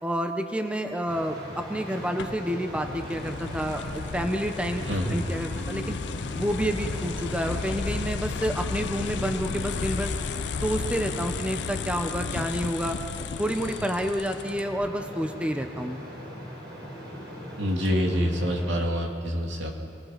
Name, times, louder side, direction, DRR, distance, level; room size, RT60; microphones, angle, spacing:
voice 1, 0.0-4.8 5.1-6.0 6.4-10.1 10.6-13.0 13.4-16.0, equal, 5° right, 5 dB, 0.9 m, -29 dB
sound 1, 1.1-18.8, equal, 65° right, 5.7 m, -40 dB
sound 2, 2.2-14.9, left 5 dB, 70° left, 0.5 m, -34 dB
voice 2, 4.9-5.3 17.6-19.7, equal, 80° right, 1 dB, 2.7 m, -26 dB
28.5 x 19.5 x 5.9 m, 2.8 s
head